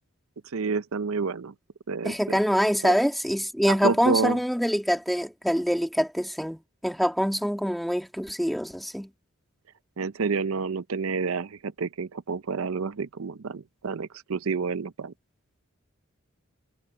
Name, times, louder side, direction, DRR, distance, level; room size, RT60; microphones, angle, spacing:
voice 1, 0.5-1.5 1.9-2.4 2.8-3.0 3.8-4.4 10.0-15.1, right 4 dB, 75° right, 0.6 m, -29 dB
voice 2, 2.0-9.1, equal, ahead, 2.3 m, -25 dB
head